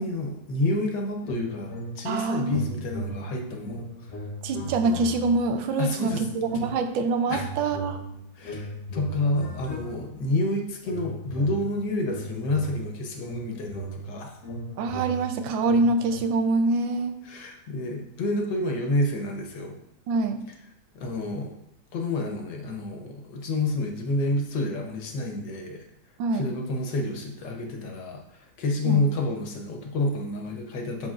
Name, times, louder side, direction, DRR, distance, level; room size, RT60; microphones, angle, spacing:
voice 1, 0.0-4.1 5.8-6.3 7.3-7.5 8.3-14.4 17.2-19.8 20.9-21.5 21.9-25.8 26.3-31.1, left 2 dB, 70° left, 2 dB, 1.4 m, -29 dB
sound 1, 1.2-2.2 2.4-5.5 6.0-6.9 7.2-10.3 10.8-16.2, right 1 dB, 50° left, 1.0 m, -37 dB
voice 2, 2.0-2.6 4.4-8.0 14.8-17.2 20.1-20.4 26.2-26.5 28.8-29.0, right 3 dB, 80° right, 7 dB, 1.4 m, -25 dB
10.5 x 3.9 x 2.4 m, 0.78 s
omnidirectional pair, 2.1 m